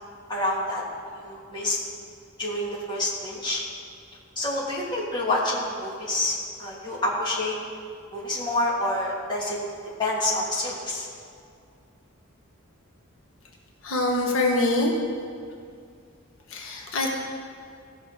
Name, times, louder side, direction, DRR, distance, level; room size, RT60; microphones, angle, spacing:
voice 1, 0.3-0.8 1.1-1.8 2.4-3.6 4.4-7.5 8.1-9.6 10.0-11.1, left 1 dB, 20° left, -5 dB, 1.8 m, -27 dB
voice 2, 13.8-14.9 16.5-17.1, left 2 dB, 70° left, -1 dB, 1.2 m, -24 dB
16.0 x 6.2 x 3.9 m, 2.3 s
head